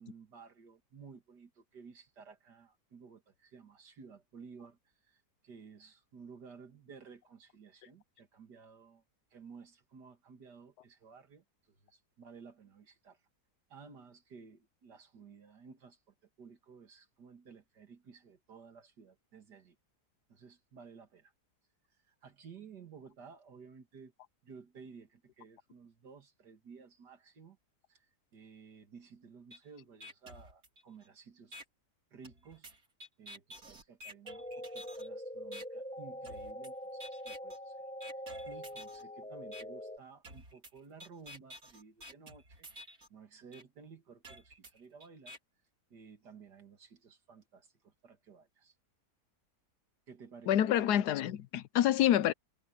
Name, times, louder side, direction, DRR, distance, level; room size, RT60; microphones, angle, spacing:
voice 1, 0.0-4.8 5.0-9.0 9.3-11.4 11.8-13.2 13.7-16.0 16.4-19.8 20.3-21.3 22.0-24.1 24.4-27.6 27.9-28.0 28.3-31.6 32.1-32.7 33.2-37.9 38.1-42.7 43.1-45.4 45.9-48.7 50.1-50.8, right 5 dB, 80° right, 2.7 m, -55 dB
sound 1, 29.5-29.6 30.0-31.0 31.5-31.6 32.2-35.1 35.5-35.6 36.2-36.7 37.0-37.6 38.0-39.0 39.5-39.6 40.2-43.1 43.5-43.6 44.2-45.4, equal, 60° right, 4.6 m, -50 dB
sound 2, 34.3-40.0, equal, 5° left, 1.2 m, -44 dB
voice 2, 50.5-52.3, left 11 dB, 80° left, 1.2 m, -27 dB
omnidirectional pair, 1.8 m